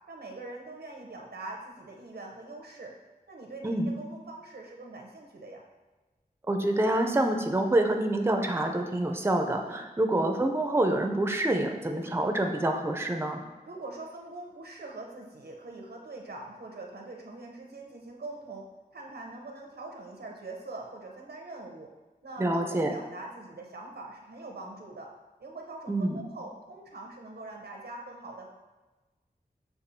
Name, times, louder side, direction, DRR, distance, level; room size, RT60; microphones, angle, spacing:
voice 1, 0.1-2.9 3.3-5.6 9.6-9.8 13.7-18.7 18.9-21.9 22.2-25.1 25.4-28.5, right 2 dB, 85° right, 0 dB, 0.7 m, -43 dB
voice 2, 6.5-13.4 22.4-22.9 25.9-26.2, right 1 dB, 15° right, 4 dB, 0.5 m, -27 dB
6.8 x 2.4 x 2.7 m, 1.2 s
wide cardioid pair, 45°, 16 cm